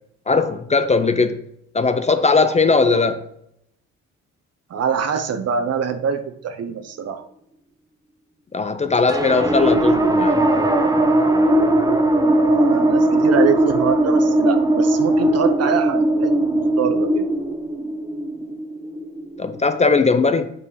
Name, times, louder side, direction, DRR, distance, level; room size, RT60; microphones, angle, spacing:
voice 1, 0.3-1.4 1.7-3.2 8.5-10.4 19.4-20.5, left 4 dB, 20° left, 0.5 m, -18 dB
voice 2, 4.7-7.2 12.3-17.3, right 7 dB, 55° right, 0.8 m, -24 dB
sound 1, 9.1-19.8, right 1 dB, 10° right, 0.8 m, -18 dB
5.4 x 4.5 x 4.9 m
cardioid pair, 90°, 30 cm